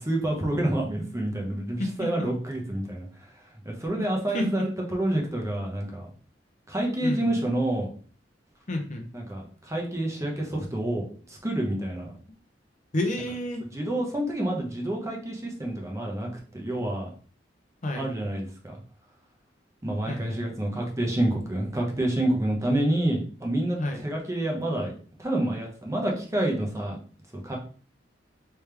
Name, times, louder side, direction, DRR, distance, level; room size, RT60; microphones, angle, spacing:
voice 1, 0.0-3.1 3.6-6.1 6.7-7.9 9.1-12.1 13.7-16.3 16.5-17.1 18.0-18.7 19.8-24.9 25.2-27.0 27.4-27.6, right 1 dB, 15° right, 0 dB, 0.8 m, -28 dB
voice 2, 1.8-2.1 4.0-4.1 4.3-4.7 7.0-7.3 8.7-9.0 12.9-13.6 17.8-18.1 20.1-20.4 23.8-24.0, left 1 dB, 40° left, 3 dB, 0.7 m, -30 dB
3.4 x 3.1 x 3.3 m, 0.42 s
head